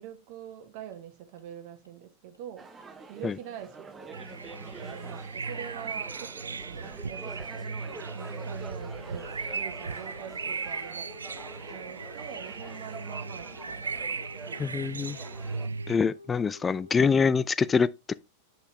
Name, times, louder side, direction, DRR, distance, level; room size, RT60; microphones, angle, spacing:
voice 1, 0.0-2.7 3.1-4.3 4.7-7.8 8.1-11.1 11.7-14.9, right 9 dB, 45° right, 1.2 m, -45 dB
sound 1, 0.9-1.0 1.4-1.5 1.8-1.9 2.3-2.4 2.8-2.9 3.3-3.4 3.7-3.8 4.2-17.3, left 3 dB, 90° left, 0.8 m, -51 dB
sound 2, 2.6-15.7, right 4 dB, 15° right, 1.0 m, -46 dB
sound 3, 4.1-16.0, right 4 dB, 75° right, 0.4 m, -37 dB
voice 2, 14.6-15.2 15.9-18.2, left 5 dB, 15° left, 0.3 m, -25 dB
8.0 x 5.7 x 3.0 m
figure-of-eight pair, 90°, 0 cm